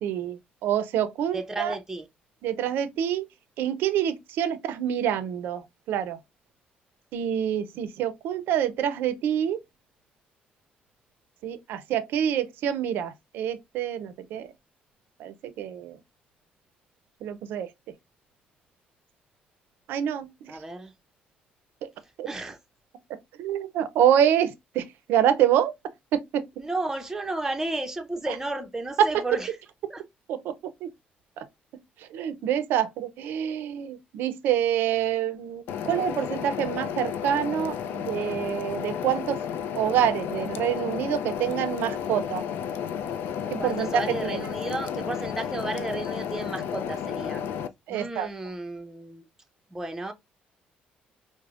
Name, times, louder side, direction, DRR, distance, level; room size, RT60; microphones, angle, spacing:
voice 1, 0.0-1.8 2.4-3.2 3.6-6.2 7.1-9.6 11.4-14.5 15.2-16.0 17.2-17.7 19.9-20.6 21.8-21.9 22.2-22.3 23.4-25.7 26.1-26.4 28.3-28.4 29.0-29.1 30.3-30.5 30.8-30.9 31.4-31.5 32.0-39.4 39.7-42.5 43.5-44.5 47.9-48.3, right 9 dB, 80° right, 0.5 m, -26 dB
voice 2, 1.3-2.0 20.5-20.9 22.3-22.6 26.6-29.5 29.9-30.0 43.6-47.4 47.9-49.3 49.7-50.1, right 2 dB, 15° right, 0.6 m, -33 dB
sound 1, 35.7-47.7, left 8 dB, 80° left, 0.4 m, -32 dB
4.9 x 2.0 x 2.4 m
cardioid pair, 100°, 3 cm